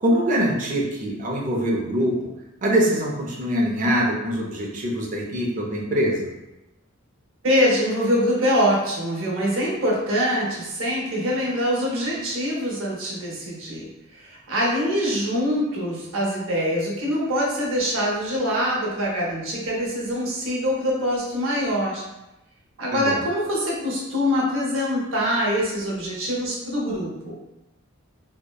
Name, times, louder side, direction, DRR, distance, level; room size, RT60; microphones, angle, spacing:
voice 1, 0.0-2.2 2.6-6.3 22.9-23.2, equal, 40° right, -2 dB, 0.5 m, -23 dB
voice 2, 7.4-22.0 22.8-27.4, equal, 70° right, -4 dB, 0.7 m, -24 dB
2.7 x 2.1 x 2.2 m, 0.96 s
head